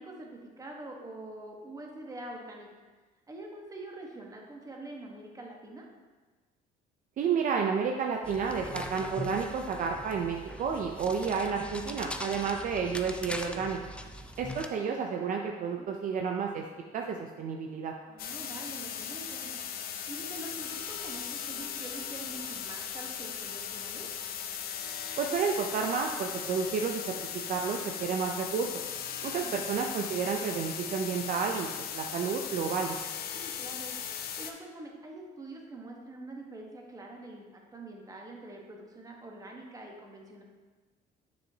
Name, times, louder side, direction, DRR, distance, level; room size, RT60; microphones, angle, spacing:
voice 1, 0.0-2.7 3.3-5.8 15.7-15.9 18.1-19.6 20.1-24.1 29.2-29.6 33.3-33.9 34.4-40.4, right 2 dB, 20° right, 0 dB, 1.2 m, -45 dB
voice 2, 7.2-13.8 14.4-16.6 16.9-17.9 25.2-27.0 27.5-28.7 29.2-31.7 31.9-33.0, right 6 dB, 50° right, 2 dB, 0.5 m, -31 dB
sound 1, 8.2-14.7, left 1 dB, 5° left, 0.4 m, -41 dB
sound 2, 18.2-34.5, left 8 dB, 65° left, 0.6 m, -38 dB
7.1 x 6.2 x 2.8 m, 1.3 s
cardioid pair, 110°, 17 cm